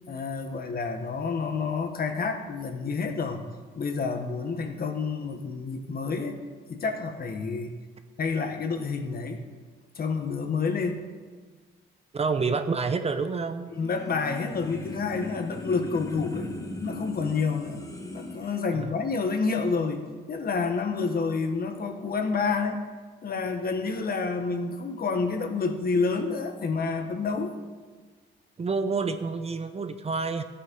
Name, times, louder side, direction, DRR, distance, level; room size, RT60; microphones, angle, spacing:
voice 1, 0.1-3.4 3.7-7.7 8.2-9.4 9.9-11.0 13.7-16.5 16.8-17.8 18.1-20.0 20.3-22.8 23.2-27.5, left 4 dB, 50° left, 6 dB, 1.5 m, -29 dB
voice 2, 12.1-13.7 18.7-18.9 28.6-30.4, right 4 dB, 30° right, 9 dB, 0.8 m, -28 dB
sound 1, 13.7-18.6, left 1 dB, 15° left, 1.6 m, -38 dB
13.5 x 8.8 x 5.4 m, 1.5 s
cardioid pair, 90°, 20 cm